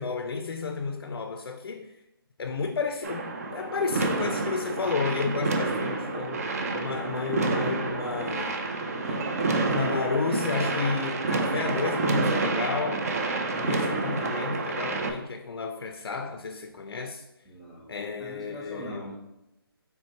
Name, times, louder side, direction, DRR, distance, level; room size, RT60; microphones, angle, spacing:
voice 1, 0.0-1.9 2.4-3.2 3.5-8.5 9.1-9.3 9.6-13.1 13.5-17.3 17.9-19.1, left 4 dB, 70° left, 0.4 m, -32 dB
sound 1, 3.0-15.1, right 3 dB, 40° right, 0.4 m, -29 dB
voice 2, 17.4-17.9 18.2-19.2, right 1 dB, 5° left, 0.7 m, -41 dB
4.2 x 3.5 x 2.8 m
figure-of-eight pair, 155°, 13 cm